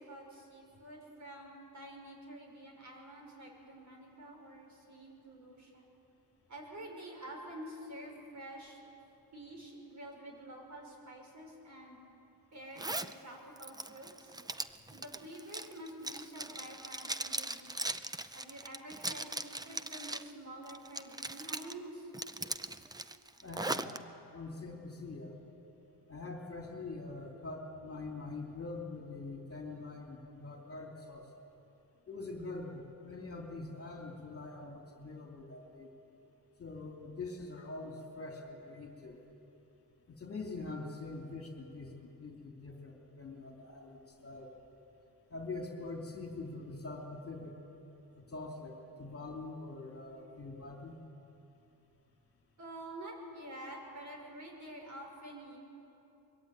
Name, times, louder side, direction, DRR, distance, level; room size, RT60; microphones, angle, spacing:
voice 1, 0.0-5.9 6.5-8.8 9.3-12.0 12.5-14.4 14.9-17.7 18.3-22.1 52.6-55.6, right 1 dB, 40° right, 1 dB, 5.7 m, -48 dB
Zipper (clothing), 12.8-13.1 13.6-20.3 20.7-21.7 22.1-24.0, right 2 dB, 10° right, 0.5 m, -39 dB
voice 2, 23.4-23.9 24.3-25.3 26.1-31.3 32.1-35.9 36.6-39.2 40.1-44.5 45.3-47.6 48.2-51.0, left 3 dB, 30° left, 0 dB, 2.9 m, -44 dB
23.5 x 22.5 x 9.3 m, 3.0 s
wide cardioid pair, 150°, 43 cm